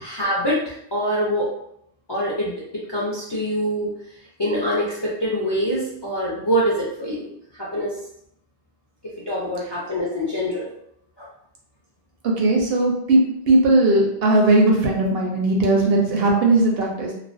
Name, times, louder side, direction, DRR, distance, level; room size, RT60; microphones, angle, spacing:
voice 1, 0.0-1.5 2.1-3.9 4.4-7.3 7.6-7.9 9.3-10.6 11.2-11.3, equal, 40° left, -6 dB, 0.4 m, -24 dB
voice 2, 12.2-17.1, right 2 dB, 65° right, -1 dB, 0.7 m, -18 dB
2.3 x 2.1 x 2.4 m, 0.73 s
omnidirectional pair, 1.1 m